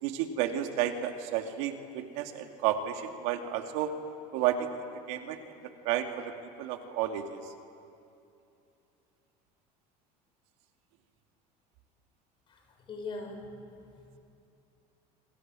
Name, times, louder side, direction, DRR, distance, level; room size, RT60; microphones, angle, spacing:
voice 1, 0.0-3.9 4.3-4.7 5.1-5.4 5.8-6.0 6.6-7.4, right 11 dB, 85° right, 4 dB, 2.5 m, -31 dB
voice 2, 12.5-13.5 13.9-14.2, left 3 dB, 30° left, 3 dB, 6.1 m, -42 dB
27.0 x 26.5 x 7.7 m, 2.7 s
cardioid pair, 150°, 16 cm